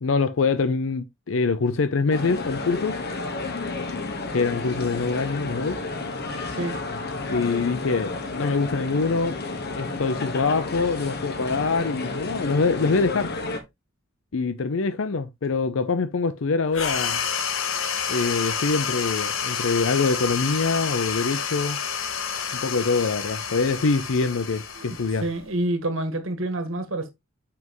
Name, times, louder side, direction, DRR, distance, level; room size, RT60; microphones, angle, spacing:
voice 1, 0.0-3.0 4.3-5.8 7.3-9.4 9.7-13.3 14.3-17.2 18.1-21.8 22.5-25.2, left 4 dB, 70° left, 0.6 m, -24 dB
sound 1, 2.1-13.6, left 3 dB, 55° left, 1.4 m, -31 dB
voice 2, 6.5-6.8 24.7-27.1, right 1 dB, 75° right, 1.7 m, -28 dB
sound 2, 16.7-25.6, left 7 dB, 90° left, 1.4 m, -29 dB
7.4 x 5.9 x 3.0 m
head